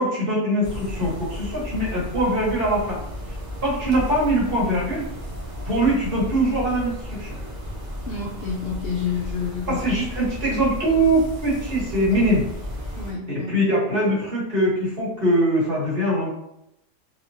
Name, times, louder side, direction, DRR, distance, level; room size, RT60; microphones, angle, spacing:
voice 1, 0.0-3.0 3.6-5.0 5.7-7.4 9.7-12.5 13.3-16.3, right 1 dB, 45° right, -6 dB, 1.4 m, -22 dB
sound 1, 0.6-13.1, equal, 30° right, 0.8 m, -34 dB
voice 2, 8.1-9.8 13.0-13.5, left 6 dB, 60° left, -3 dB, 0.7 m, -29 dB
2.9 x 2.9 x 2.7 m, 0.80 s
omnidirectional pair, 1.3 m